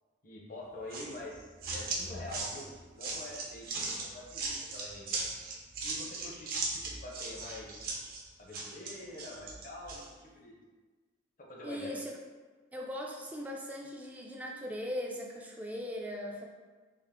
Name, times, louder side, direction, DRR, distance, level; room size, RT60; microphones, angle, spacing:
voice 1, 0.2-5.3 5.8-7.9 8.4-10.6 11.4-12.0, left 1 dB, 45° left, -3 dB, 0.7 m, -46 dB
sound 1, 0.9-10.1, right 3 dB, 50° right, 0.6 m, -38 dB
voice 2, 11.6-12.1 12.7-16.4, equal, 10° right, -2 dB, 0.3 m, -39 dB
3.6 x 2.4 x 3.6 m, 1.3 s
head